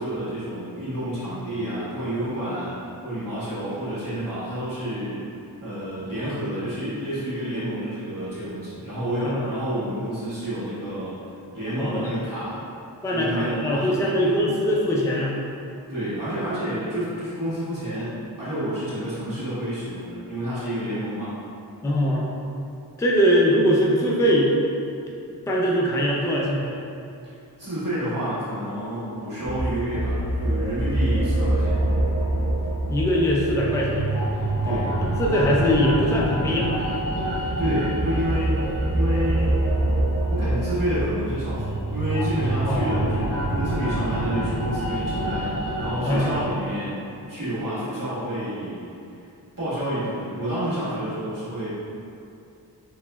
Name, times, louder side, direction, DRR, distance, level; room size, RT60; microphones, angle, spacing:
voice 1, 0.0-2.7 3.0-5.2 5.6-11.1 11.5-12.7 13.1-14.2 15.9-21.3 27.6-31.8 34.6-34.9 37.6-38.6 38.9-39.6 40.3-47.0 47.3-48.9 49.6-51.7, equal, 55° right, -12 dB, 1.4 m, -29 dB
voice 2, 11.8-12.1 13.0-15.4 21.8-22.2 23.0-24.5 25.5-26.8 32.9-34.1 34.6-36.8 42.7-42.9 46.0-46.4, equal, 10° left, -4 dB, 0.4 m, -22 dB
sound 1, 29.4-46.4, right 1 dB, 40° left, 1.0 m, -25 dB
3.1 x 2.9 x 2.2 m, 2.6 s
wide cardioid pair, 40°, 40 cm